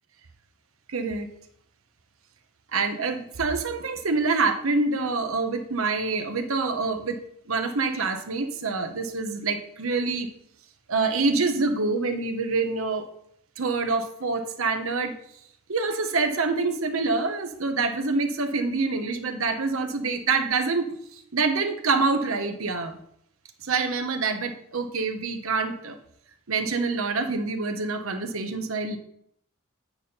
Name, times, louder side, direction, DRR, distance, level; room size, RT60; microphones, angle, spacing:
voice 1, 0.9-1.3 2.7-7.2 7.5-10.3 10.9-13.1 13.6-15.2 15.7-23.0 23.6-26.0 26.5-29.0, right 4 dB, 70° right, 7 dB, 1.0 m, -26 dB
9.2 x 4.2 x 5.5 m, 0.70 s
head